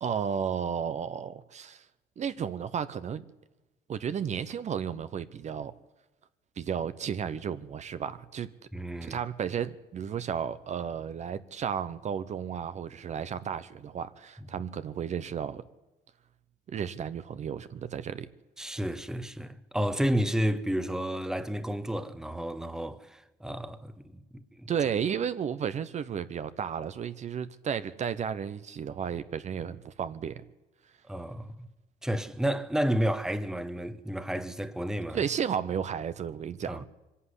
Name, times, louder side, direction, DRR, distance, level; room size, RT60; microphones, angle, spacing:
voice 1, 0.0-1.8 2.2-3.2 3.9-5.7 6.6-8.5 9.0-15.6 16.7-18.3 24.7-30.4 35.1-36.8, right 7 dB, 45° right, 0.9 m, -33 dB
voice 2, 8.7-9.2 18.6-24.0 24.3-24.7 31.1-31.7 32.0-35.2 36.7-36.9, equal, 5° right, 1.1 m, -31 dB
23.5 x 11.5 x 9.9 m
cardioid pair, 110°, 17 cm